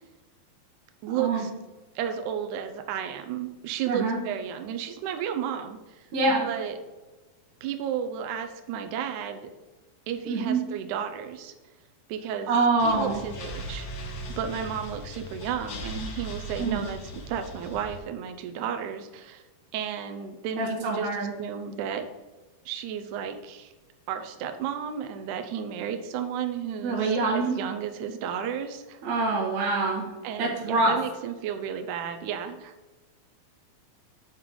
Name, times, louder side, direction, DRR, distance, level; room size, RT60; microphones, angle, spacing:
voice 1, 1.0-1.5 2.0-6.8 7.6-9.5 10.1-11.5 12.1-12.6 12.8-17.0 17.3-19.4 19.7-22.1 22.7-23.7 24.1-29.0 30.2-32.7, right 8 dB, 80° right, 6 dB, 1.8 m, -33 dB
voice 2, 3.9-4.2 6.1-6.5 10.3-10.6 12.5-13.2 16.6-16.8 20.6-21.3 26.8-27.5 29.0-30.1 30.4-30.9, right 3 dB, 55° right, -4 dB, 2.5 m, -25 dB
sound 1, 12.8-18.0, equal, 80° left, 1.4 m, -38 dB
9.1 x 3.7 x 4.7 m, 1.2 s
omnidirectional pair, 4.3 m